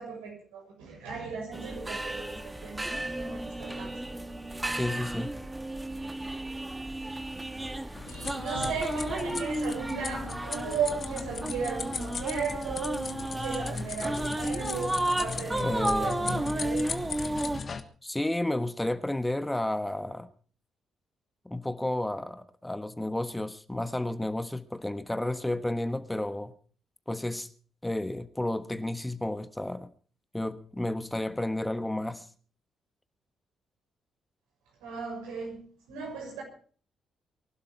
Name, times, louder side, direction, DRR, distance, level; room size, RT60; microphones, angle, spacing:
voice 1, 0.0-3.9 8.0-16.9 34.8-36.4, right 5 dB, 80° right, 6.7 m, -36 dB
sound 1, 1.5-17.6, right 1 dB, 15° right, 1.8 m, -33 dB
voice 2, 4.7-5.3 15.6-16.4 18.0-20.3 21.4-26.5 27.1-27.5 27.8-29.9 30.3-32.3, left 1 dB, 10° left, 1.3 m, -32 dB
sound 2, 7.9-17.8, left 5 dB, 45° left, 1.5 m, -38 dB
23.5 x 12.0 x 4.6 m
hypercardioid pair, 45°, 0 cm